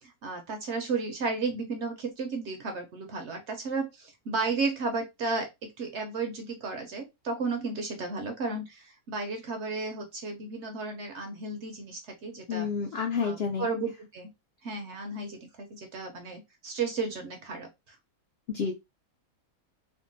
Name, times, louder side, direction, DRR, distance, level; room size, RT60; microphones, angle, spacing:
voice 1, 0.0-12.7 13.2-14.3 14.6-18.0, right 3 dB, 60° right, 4 dB, 0.7 m, -33 dB
voice 2, 12.5-13.7 18.5-18.7, left 6 dB, 65° left, 2 dB, 0.6 m, -29 dB
3.6 x 2.0 x 2.5 m, 0.22 s
omnidirectional pair, 1.6 m